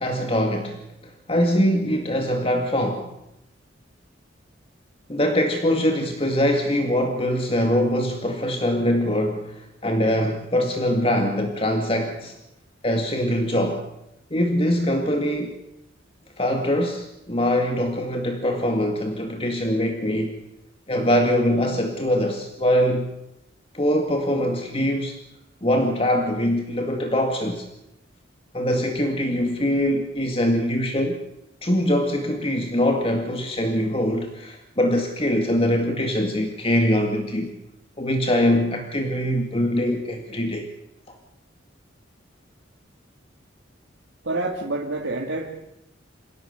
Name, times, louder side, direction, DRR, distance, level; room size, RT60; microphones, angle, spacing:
voice 1, 0.0-3.1 5.1-12.4 12.8-13.8 14.3-15.6 16.4-20.3 20.9-23.1 23.7-25.2 25.6-27.7 28.5-31.2 31.6-37.5 38.0-40.7 41.1-41.2, equal, 30° left, 3 dB, 2.0 m, -23 dB
voice 2, 44.2-45.5, right 2 dB, 75° right, -1 dB, 2.7 m, -27 dB
27.0 x 17.5 x 8.2 m, 0.90 s
head